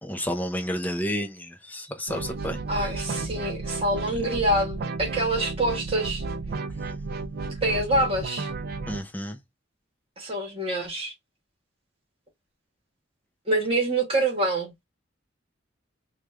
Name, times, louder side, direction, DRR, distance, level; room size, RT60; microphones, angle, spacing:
voice 1, 0.0-2.9 8.9-9.4, equal, 10° left, 0.6 m, -31 dB
sound 1, 2.1-9.0, right 3 dB, 50° right, 0.4 m, -33 dB
voice 2, 2.7-6.2 7.6-8.5 10.2-11.1 13.5-14.7, right 1 dB, 30° right, 1.4 m, -26 dB
3.2 x 2.4 x 3.2 m
head